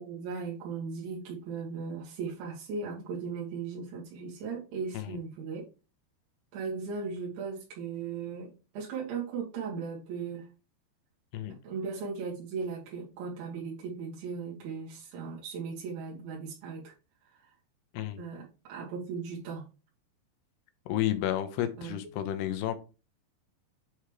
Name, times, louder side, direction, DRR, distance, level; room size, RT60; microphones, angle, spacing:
voice 1, 0.0-5.7 6.5-10.5 11.5-16.9 18.2-19.7 21.8-22.0, right 5 dB, 85° right, 4.2 m, -37 dB
voice 2, 20.9-22.8, left 12 dB, 75° left, 2.7 m, -31 dB
8.9 x 3.6 x 4.8 m
omnidirectional pair, 5.1 m